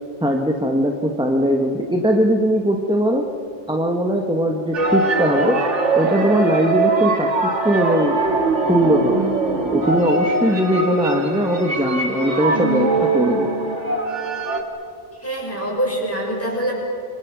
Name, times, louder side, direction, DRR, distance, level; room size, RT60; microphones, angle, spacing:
voice 1, 0.2-3.3 3.7-5.6 6.0-8.2 8.7-9.3 9.7-13.6, equal, 5° right, 2 dB, 1.4 m, -20 dB
sound 1, 4.7-14.6, right 3 dB, 75° right, 2.3 m, -22 dB
voice 2, 15.2-16.7, right 1 dB, 10° left, -3 dB, 6.9 m, -24 dB
27.5 x 25.0 x 6.2 m, 2.4 s
omnidirectional pair, 1.2 m